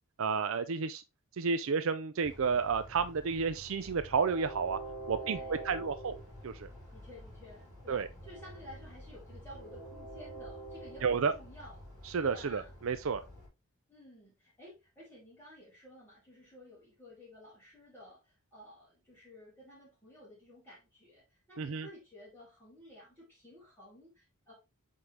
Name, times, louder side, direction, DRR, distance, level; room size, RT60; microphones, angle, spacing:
voice 1, 0.2-1.0 1.4-4.8 5.1-6.2 6.4-6.7 7.9-8.1 11.0-11.3 12.1-13.2 21.6-21.9, right 5 dB, 60° right, 0.4 m, -31 dB
Train, 2.2-13.5, right 1 dB, 15° right, 2.9 m, -47 dB
voice 2, 5.1-5.9 6.9-11.9 12.2-12.8 13.9-24.5, left 1 dB, 10° left, 2.7 m, -54 dB
7.9 x 3.7 x 3.2 m
head